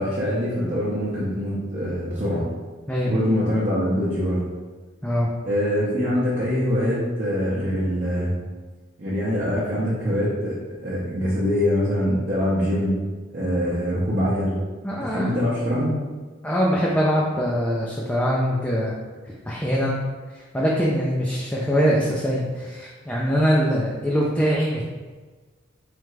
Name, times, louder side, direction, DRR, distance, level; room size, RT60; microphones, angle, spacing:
voice 1, 0.0-2.5 3.0-4.4 5.4-8.3 9.0-12.9 13.3-14.6 15.0-15.9, equal, 45° right, -9 dB, 0.8 m, -24 dB
voice 2, 14.8-15.3 16.4-19.0 19.5-20.0 20.3-24.8, equal, 5° left, -5 dB, 0.4 m, -23 dB
3.7 x 3.4 x 3.2 m, 1.3 s
head